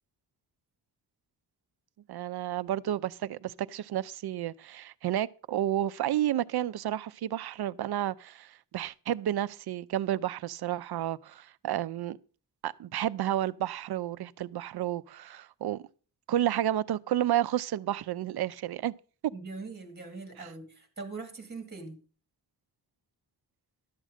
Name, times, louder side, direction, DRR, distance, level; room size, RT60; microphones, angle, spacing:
voice 1, 2.1-12.2 12.6-15.8 16.3-18.9 20.4-20.5, right 12 dB, 70° right, 0.5 m, -31 dB
voice 2, 19.3-22.0, right 3 dB, 25° right, 2.1 m, -42 dB
12.0 x 7.4 x 5.0 m
wide cardioid pair, 175°, 40 cm